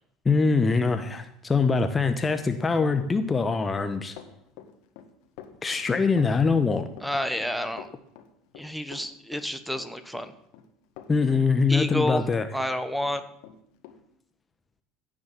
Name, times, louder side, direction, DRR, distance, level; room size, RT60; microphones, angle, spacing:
voice 1, 0.2-4.1 5.6-6.9 11.1-12.5, left 4 dB, 20° left, 8 dB, 1.1 m, -23 dB
Run, 1.6-12.8 13.0-14.0, left 10 dB, 60° left, 1.8 m, -47 dB
voice 2, 7.0-7.9 8.5-10.3 11.7-12.2 12.5-13.2, left 1 dB, ahead, 11 dB, 1.4 m, -29 dB
16.5 x 6.4 x 7.6 m, 0.74 s
hypercardioid pair, 70°, 0 cm